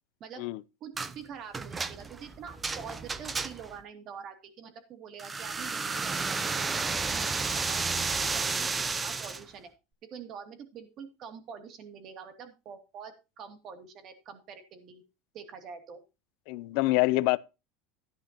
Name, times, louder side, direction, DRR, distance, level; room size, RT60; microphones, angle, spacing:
voice 1, 0.8-7.8 8.3-8.7 8.9-9.7 10.1-15.0 15.3-16.0, right 7 dB, 40° right, 2.7 m, -45 dB
sound 1, 1.0-1.2 1.5-3.8 5.2-9.4, right 4 dB, 15° right, 0.7 m, -32 dB
voice 2, 16.5-17.4, left 20 dB, 60° left, 0.7 m, -25 dB
14.5 x 10.5 x 3.0 m
supercardioid pair, 150°, 0 cm